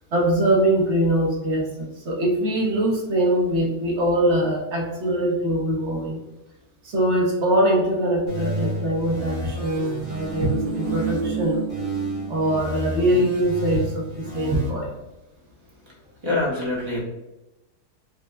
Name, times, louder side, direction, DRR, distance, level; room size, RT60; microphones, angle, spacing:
voice 1, 0.1-6.2 6.8-11.6 12.3-14.9, right 1 dB, 55° right, -1 dB, 0.9 m, -22 dB
sound 1, 8.3-11.3 11.7-14.7, right 1 dB, 70° left, 2.1 m, -31 dB
sound 2, 10.0-12.7 13.0-13.1, right 4 dB, 90° right, 1.2 m, -29 dB
voice 2, 15.8-17.0, left 2 dB, 25° right, -5 dB, 0.8 m, -26 dB
5.5 x 2.0 x 2.2 m, 0.99 s
omnidirectional pair, 1.7 m